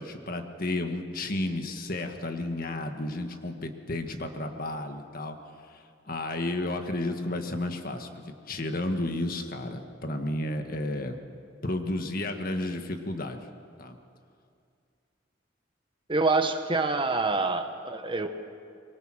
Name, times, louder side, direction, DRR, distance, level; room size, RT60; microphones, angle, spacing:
voice 1, 0.0-5.4 6.0-11.2 11.6-13.4 13.8-14.0, left 1 dB, 50° left, 6 dB, 1.6 m, -32 dB
voice 2, 16.1-18.3, right 3 dB, 25° right, 7 dB, 1.2 m, -26 dB
25.0 x 23.0 x 6.3 m, 2.3 s
head